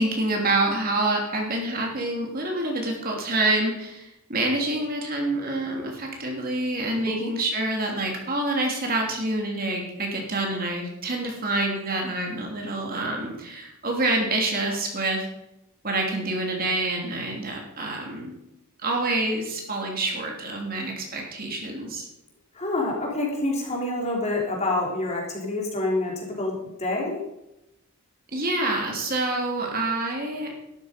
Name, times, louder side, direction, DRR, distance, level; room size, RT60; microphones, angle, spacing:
voice 1, 0.0-15.3 15.8-18.3 18.8-22.1 28.3-30.5, right 2 dB, 40° right, 0 dB, 3.0 m, -27 dB
voice 2, 22.6-27.2, left 2 dB, 30° left, -1 dB, 3.7 m, -27 dB
13.0 x 12.5 x 5.2 m, 0.88 s
head